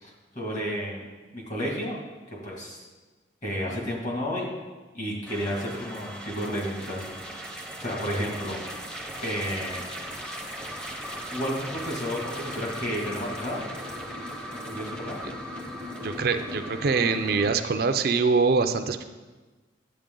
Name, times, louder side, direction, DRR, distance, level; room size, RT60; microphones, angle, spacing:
voice 1, 0.0-1.0 1.3-2.0 2.4-2.8 3.4-4.5 4.9-7.0 7.3-7.5 7.8-8.6 9.2-9.8 11.3-13.6 14.5-15.2, equal, 40° left, -2 dB, 2.1 m, -31 dB
sound 1, 5.3-17.5, equal, 5° left, 0.7 m, -37 dB
voice 2, 16.0-19.0, right 4 dB, 55° right, 8 dB, 0.5 m, -24 dB
10.5 x 7.6 x 3.8 m, 1.3 s
head